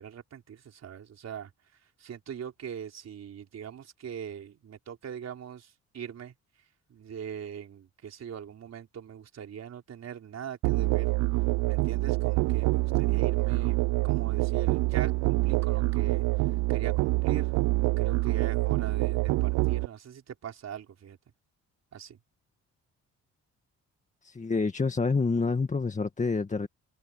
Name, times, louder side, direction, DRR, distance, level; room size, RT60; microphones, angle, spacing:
voice 1, 0.0-1.5 2.0-6.3 6.9-11.1 11.7-16.2 16.7-17.5 18.0-21.2 21.9-22.2, right 8 dB, 60° right, 4.5 m, -41 dB
Musical instrument, 10.6-19.9, right 23 dB, 90° right, 0.5 m, -26 dB
voice 2, 24.2-26.7, left 4 dB, 25° left, 1.7 m, -27 dB
cardioid pair, 90°, 30 cm